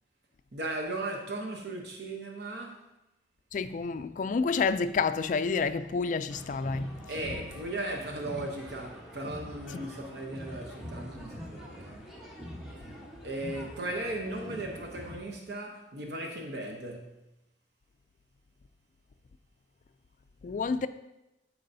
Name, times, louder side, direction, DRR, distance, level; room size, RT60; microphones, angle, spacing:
voice 1, 0.5-2.8 7.1-12.1 13.2-17.3, right 2 dB, 65° right, 0.9 m, -37 dB
voice 2, 3.5-7.0 9.7-9.9 20.4-20.9, left 4 dB, 45° left, 0.3 m, -29 dB
sound 1, 6.3-15.2, equal, 5° right, 1.1 m, -44 dB
13.0 x 4.7 x 2.7 m
head